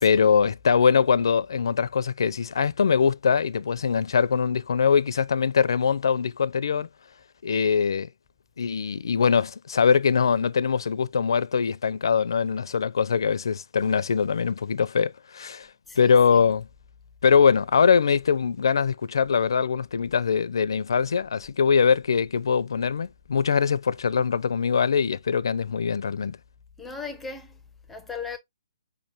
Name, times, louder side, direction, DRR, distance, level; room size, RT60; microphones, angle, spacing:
voice 1, 0.0-6.9 7.4-8.1 8.6-15.7 16.0-16.7 17.2-26.4, left 6 dB, 70° left, 0.5 m, -22 dB
voice 2, 15.9-16.5 26.8-27.6 27.9-28.4, left 5 dB, 5° left, 0.5 m, -38 dB
5.0 x 3.1 x 2.7 m
hypercardioid pair, 170°, 3 cm